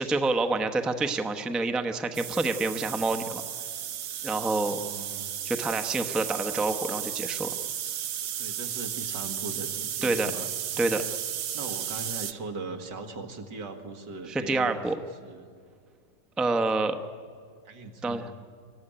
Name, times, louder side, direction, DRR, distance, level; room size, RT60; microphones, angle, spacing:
voice 1, 0.0-3.4 4.2-4.8 5.4-7.5 10.0-10.3 10.8-11.0 14.3-15.0 16.4-17.0 18.0-18.3, right 3 dB, ahead, 7 dB, 0.6 m, -27 dB
sound 1, 2.1-12.3, right 10 dB, 60° right, 1.0 m, -34 dB
voice 2, 4.7-5.3 8.3-10.5 11.5-14.8 15.2-15.5 17.7-18.3, right 3 dB, 85° right, 5 dB, 2.5 m, -40 dB
25.0 x 14.5 x 10.0 m, 2.1 s
omnidirectional pair, 1.8 m